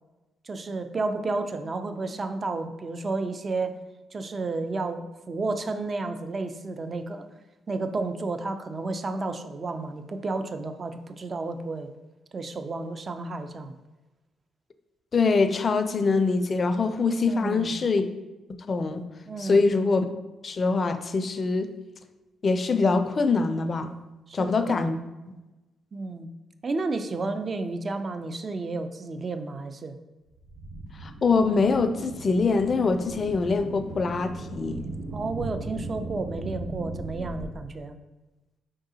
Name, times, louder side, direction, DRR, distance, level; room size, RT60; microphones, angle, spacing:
voice 1, 0.4-3.8 4.1-7.3 7.7-11.9 12.3-13.7 17.3-17.7 19.3-19.7 24.3-24.9 25.9-26.3 26.6-30.0 35.1-37.9, right 3 dB, 45° right, 9 dB, 0.4 m, -32 dB
voice 2, 15.1-18.1 18.7-19.0 19.4-20.1 20.4-21.7 22.4-23.9 24.3-25.0 31.0-34.8, left 4 dB, 45° left, 10 dB, 0.4 m, -24 dB
sound 1, 30.3-37.5, right 2 dB, 70° right, 1.0 m, -37 dB
4.7 x 3.7 x 2.7 m, 1.1 s
supercardioid pair, 50°, 0 cm